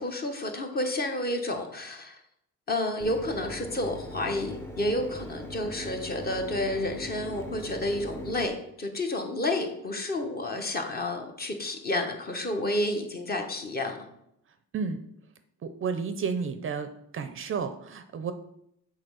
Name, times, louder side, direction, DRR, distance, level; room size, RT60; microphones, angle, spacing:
voice 1, 0.0-2.2 2.7-14.1, left 1 dB, 30° left, 4 dB, 1.1 m, -30 dB
Mechanisms, 3.0-8.5, left 1 dB, 5° left, 0.7 m, -40 dB
voice 2, 15.6-16.9 17.1-18.3, right 5 dB, 40° right, 9 dB, 0.6 m, -31 dB
7.7 x 4.0 x 6.3 m, 0.76 s
cardioid pair, 160°, 33 cm